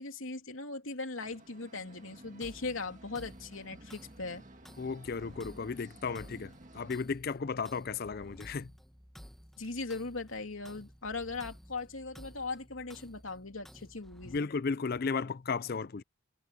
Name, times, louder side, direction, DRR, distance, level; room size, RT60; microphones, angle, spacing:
voice 1, 0.0-4.4 9.6-14.5, left 3 dB, 80° left, 3.0 m, -39 dB
sound 1, 1.2-7.0, right 1 dB, 40° right, 2.0 m, -54 dB
sound 2, 2.4-14.4, equal, ahead, 1.5 m, -54 dB
voice 2, 4.8-8.7 14.3-16.0, left 5 dB, 50° left, 0.5 m, -34 dB
head